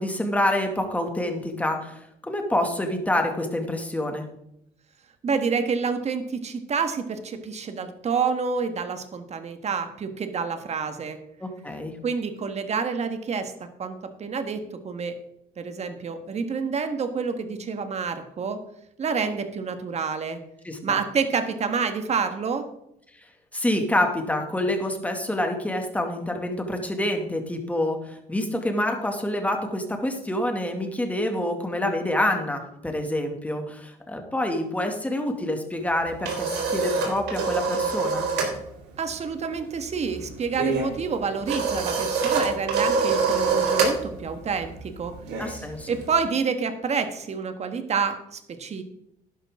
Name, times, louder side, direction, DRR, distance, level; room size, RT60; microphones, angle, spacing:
voice 1, 0.0-4.3 11.4-11.9 20.6-21.0 23.5-38.3 45.4-45.9, left 1 dB, 10° left, 3 dB, 2.3 m, -27 dB
voice 2, 5.2-11.2 12.0-13.5 13.8-15.1 15.6-18.6 19.0-20.4 20.8-22.7 39.0-45.1 45.9-48.8, right 5 dB, 40° right, 8 dB, 1.7 m, -28 dB
sound 1, 35.9-38.6 38.8-39.1 39.4-46.1, right 4 dB, 85° right, 3.7 m, -26 dB
12.0 x 11.0 x 3.8 m, 0.79 s
cardioid pair, 110°, 17 cm